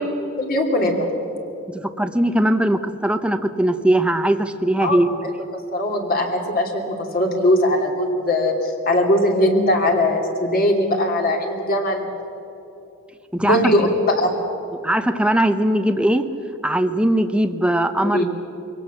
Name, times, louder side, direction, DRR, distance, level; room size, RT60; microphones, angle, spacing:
voice 1, 0.4-1.1 4.8-5.3 5.7-6.8 7.1-12.0 13.4-13.9 14.2-14.3 18.0-18.3, left 1 dB, 45° left, 2 dB, 2.9 m, -20 dB
voice 2, 1.7-5.1 13.3-13.6 14.8-16.3 16.6-18.3, right 1 dB, 5° right, 8 dB, 0.8 m, -20 dB
24.0 x 17.5 x 7.2 m, 2.9 s
head